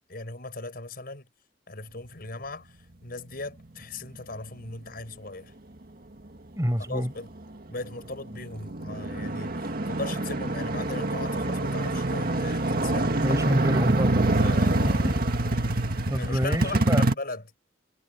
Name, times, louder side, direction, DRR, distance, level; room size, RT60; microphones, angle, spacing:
voice 1, 0.1-1.2 1.7-2.7 3.0-5.5 6.8-7.3 7.7-13.4 14.4-15.1 16.2-17.4, left 2 dB, 55° left, 6.1 m, -38 dB
voice 2, 6.5-7.1 13.2-15.2 16.1-17.0, equal, 20° right, 6.6 m, -28 dB
sound 1, 7.8-7.9 8.3-17.1, right 2 dB, 55° right, 2.0 m, -25 dB
head